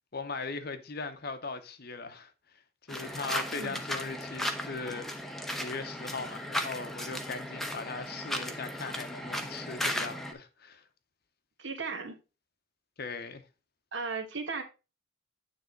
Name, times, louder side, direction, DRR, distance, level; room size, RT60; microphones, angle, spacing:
voice 1, 0.1-5.1 5.3-10.9 13.0-13.4, left 4 dB, 50° left, 0.8 m, -39 dB
sound 1, 2.9-10.3, equal, ahead, 0.7 m, -36 dB
voice 2, 11.6-12.2 13.9-14.6, right 4 dB, 60° right, 1.4 m, -36 dB
9.3 x 3.5 x 4.5 m
head